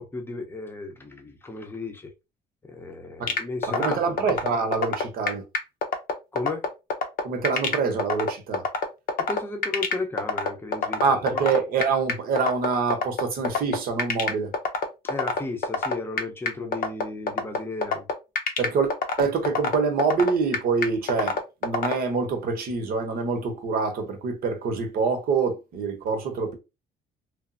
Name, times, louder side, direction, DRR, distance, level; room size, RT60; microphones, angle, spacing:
voice 1, 0.0-2.1 2.6-4.4 6.3-6.7 9.2-11.0 11.3-11.5 15.0-18.1, left 2 dB, 15° left, 0.6 m, -34 dB
sound 1, 3.3-21.9, left 4 dB, 60° left, 0.6 m, -24 dB
voice 2, 3.7-5.4 7.2-8.6 11.0-14.5 18.6-18.9 19.2-26.6, right 5 dB, 60° right, 0.8 m, -25 dB
3.1 x 2.0 x 2.5 m
cardioid pair, 110°, 17 cm